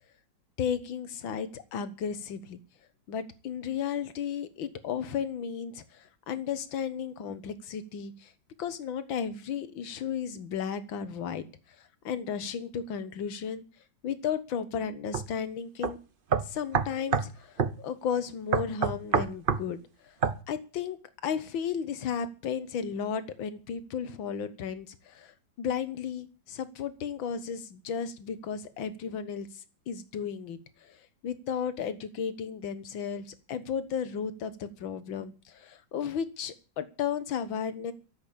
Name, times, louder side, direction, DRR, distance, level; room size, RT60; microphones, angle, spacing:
voice 1, 0.6-2.6 3.1-8.3 8.6-11.5 11.8-13.6 14.0-16.0 16.5-20.1 20.5-21.0 21.2-31.0 31.2-37.9, left 7 dB, 75° left, 12 dB, 2.0 m, -34 dB
sound 1, 15.1-15.3 15.8-15.9 16.3-17.3 17.6-17.8 18.5-19.7 20.2-20.4, right 6 dB, 55° right, 0.6 m, -26 dB
14.0 x 7.8 x 8.7 m, 0.34 s
omnidirectional pair, 2.2 m